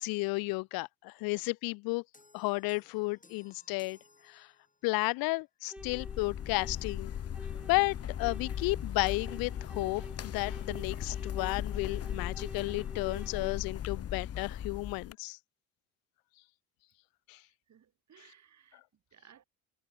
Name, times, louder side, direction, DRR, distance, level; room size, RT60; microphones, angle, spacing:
voice 1, 0.0-2.0 2.3-4.0 4.3-4.5 4.8-7.1 7.7-15.4 17.3-17.4, left 25 dB, 70° left, 0.6 m, -33 dB
sound 1, 2.1-5.0, left 3 dB, 20° left, 5.4 m, -62 dB
sound 2, 5.7-13.6, right 1 dB, 5° right, 2.7 m, -50 dB
sound 3, 5.8-15.1, left 9 dB, 40° left, 1.1 m, -38 dB
voice 2, 17.4-19.4, right 9 dB, 50° right, 4.9 m, -61 dB
hypercardioid pair, 65°, 37 cm